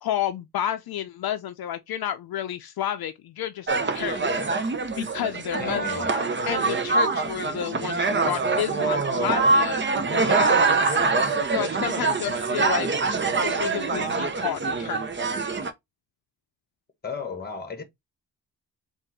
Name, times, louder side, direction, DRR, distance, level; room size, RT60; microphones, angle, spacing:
voice 1, 0.0-4.2 5.0-6.1 6.5-9.7 10.1-11.0 11.5-12.9 13.3-15.0, left 11 dB, 70° left, 0.6 m, -31 dB
sound 1, 3.7-15.7, right 3 dB, 30° right, 0.8 m, -24 dB
voice 2, 5.6-6.1 17.0-17.8, left 5 dB, 25° left, 1.2 m, -34 dB
3.8 x 2.6 x 4.5 m
cardioid pair, 85°, 38 cm